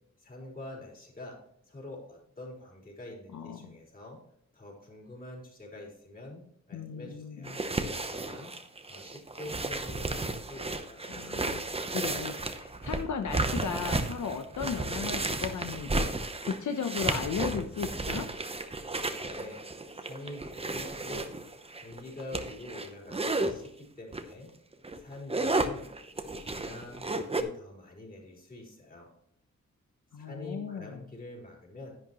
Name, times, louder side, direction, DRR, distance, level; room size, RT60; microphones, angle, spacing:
voice 1, 0.2-1.4 1.7-4.2 4.5-7.6 8.0-8.5 8.8-11.0 19.2-19.6 19.9-21.3 21.7-24.5 24.9-25.9 26.4-29.1 30.2-31.9, left 2 dB, 30° left, -2 dB, 4.0 m, -45 dB
voice 2, 3.3-3.7 6.7-7.5 11.1-11.6 11.9-16.1 16.4-18.3 30.1-31.0, left 6 dB, 75° left, 5 dB, 0.8 m, -35 dB
sound 1, 7.4-23.5 24.1-24.3 24.7-27.4, right 2 dB, 20° right, 0.8 m, -33 dB
11.0 x 10.5 x 3.0 m, 0.69 s
wide cardioid pair, 150°, 29 cm